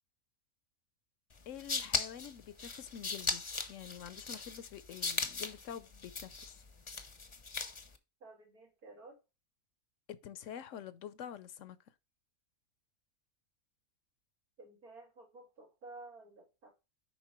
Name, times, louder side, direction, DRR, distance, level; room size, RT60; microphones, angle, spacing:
sound 1, 1.4-8.0, left 4 dB, 30° left, 0.5 m, -38 dB
voice 1, 1.5-3.4 3.7-6.6 10.1-11.8, left 9 dB, 65° left, 0.9 m, -47 dB
voice 2, 8.2-9.2 14.6-16.7, right 2 dB, 90° right, 3.4 m, -53 dB
7.4 x 5.3 x 3.0 m
omnidirectional pair, 1.5 m